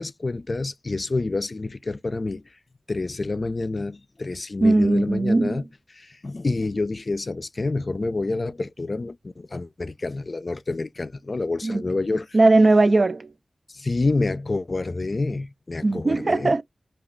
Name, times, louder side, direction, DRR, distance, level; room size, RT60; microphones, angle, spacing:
voice 1, 0.0-2.4 2.9-5.7 5.9-12.4 13.7-16.6, left 3 dB, 55° left, 0.3 m, -28 dB
voice 2, 4.6-5.6 11.6-11.8 12.3-13.3 15.8-16.6, right 2 dB, 55° right, 0.3 m, -19 dB
2.3 x 2.3 x 3.5 m
cardioid pair, 50°, 0 cm